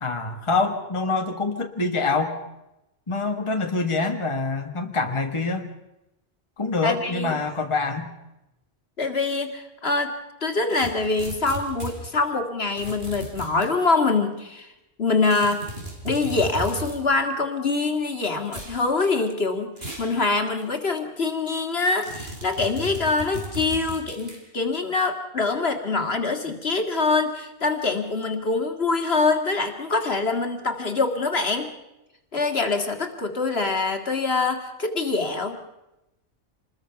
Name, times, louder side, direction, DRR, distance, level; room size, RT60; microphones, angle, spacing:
voice 1, 0.0-2.4 3.1-5.7 6.6-8.1, left 3 dB, 25° left, 4 dB, 1.5 m, -25 dB
voice 2, 6.8-7.4 9.0-10.1 10.4-14.7 15.0-15.6 16.0-19.7 20.0-31.7 32.3-35.6, left 3 dB, 55° left, 5 dB, 2.3 m, -24 dB
sound 1, 10.7-12.0 12.8-13.7 15.2-17.0 18.5-18.8 19.8-20.1 20.6-20.7 22.0-24.4, right 1 dB, 50° right, 4.7 m, -36 dB
27.0 x 21.0 x 5.8 m, 0.93 s
omnidirectional pair, 1.3 m